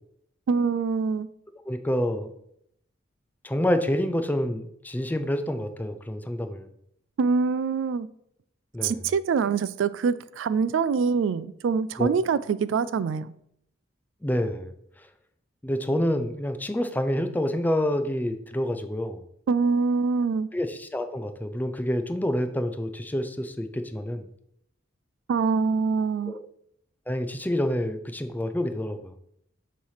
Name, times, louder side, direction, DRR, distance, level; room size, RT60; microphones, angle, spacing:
voice 1, 0.5-1.3 7.2-8.1 8.8-13.3 19.5-20.5 25.3-26.3, right 5 dB, 70° right, 17 dB, 0.3 m, -24 dB
voice 2, 1.7-2.3 3.4-6.7 8.7-9.0 12.0-12.1 14.2-14.7 15.0-15.1 15.6-19.2 20.5-24.3 26.3-26.4 27.1-29.1, left 1 dB, 10° left, 8 dB, 0.5 m, -28 dB
7.0 x 3.2 x 5.6 m, 0.74 s
head